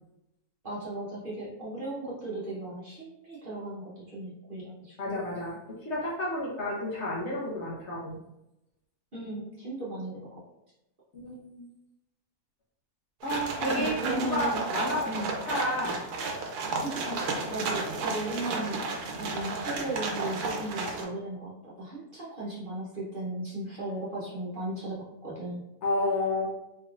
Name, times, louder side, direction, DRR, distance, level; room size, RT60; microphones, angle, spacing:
voice 1, 0.6-5.2 9.1-10.2 13.8-14.7 15.0-15.3 16.8-21.5 21.8-25.0 25.2-25.6, right 2 dB, 40° right, -7 dB, 0.9 m, -36 dB
voice 2, 5.0-5.6 5.8-8.2 11.1-11.6 13.2-15.1 15.5-16.0 17.1-17.2 25.8-26.5, left 1 dB, 55° left, -4 dB, 0.9 m, -31 dB
sound 1, 13.2-21.0, right 3 dB, 90° right, 1.2 m, -33 dB
3.3 x 3.2 x 2.4 m, 0.89 s
omnidirectional pair, 1.6 m